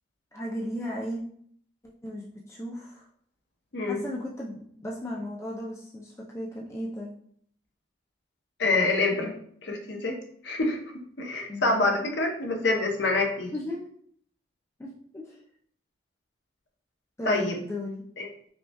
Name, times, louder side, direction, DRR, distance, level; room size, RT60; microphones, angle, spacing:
voice 1, 0.3-1.2 2.0-3.0 3.8-7.1 11.5-11.8 13.5-13.8 14.8-14.9 15.1-15.4 17.2-18.0, left 1 dB, 15° left, -3 dB, 0.3 m, -35 dB
voice 2, 3.7-4.0 8.6-9.3 9.6-10.2 10.4-10.8 11.2-13.5 17.2-17.6 18.2-18.3, left 2 dB, 60° left, 2 dB, 0.6 m, -26 dB
5.1 x 2.2 x 2.2 m, 0.63 s
head